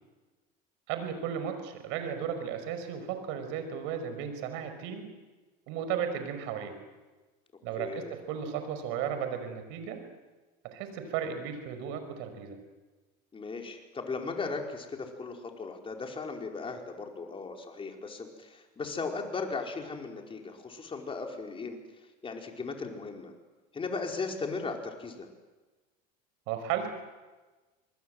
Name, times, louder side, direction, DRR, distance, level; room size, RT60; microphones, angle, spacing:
voice 1, 0.9-5.0 5.7-6.7 7.6-10.0 10.6-12.6 26.5-26.9, right 8 dB, 70° right, 8 dB, 5.4 m, -35 dB
voice 2, 7.8-8.1 13.3-21.8 22.2-23.3 23.7-25.3, left 4 dB, 25° left, 2 dB, 4.9 m, -37 dB
26.5 x 21.5 x 7.9 m, 1.2 s
supercardioid pair, 90°, 21 cm